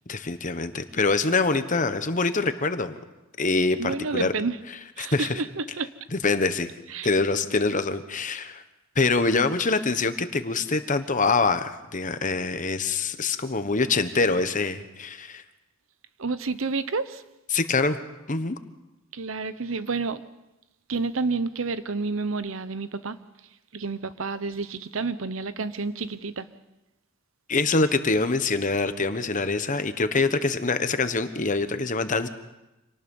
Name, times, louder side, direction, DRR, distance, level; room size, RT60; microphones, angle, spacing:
voice 1, 0.1-3.0 3.4-4.3 5.0-5.4 6.1-6.7 7.0-8.6 8.9-15.4 17.5-18.0 18.3-18.6 27.5-32.3, left 3 dB, 40° left, 1.2 m, -25 dB
voice 2, 3.8-4.6 5.0-5.9 6.9-7.1 16.2-17.2 19.1-20.2 20.9-23.2 23.7-26.5, right 4 dB, 85° right, 0.9 m, -29 dB
26.5 x 18.5 x 5.5 m
head